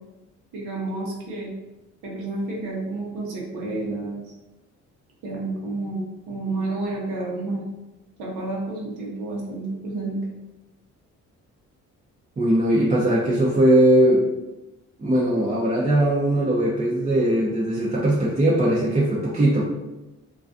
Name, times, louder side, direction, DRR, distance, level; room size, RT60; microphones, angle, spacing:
voice 1, 0.5-1.5 2.0-4.2 5.2-7.6 8.2-10.2, right 2 dB, 85° right, -3 dB, 0.7 m, -30 dB
voice 2, 12.4-14.3 15.0-19.6, right 1 dB, 20° right, -6 dB, 0.5 m, -20 dB
2.3 x 2.3 x 2.5 m, 1.0 s
cardioid pair, 90°, 30 cm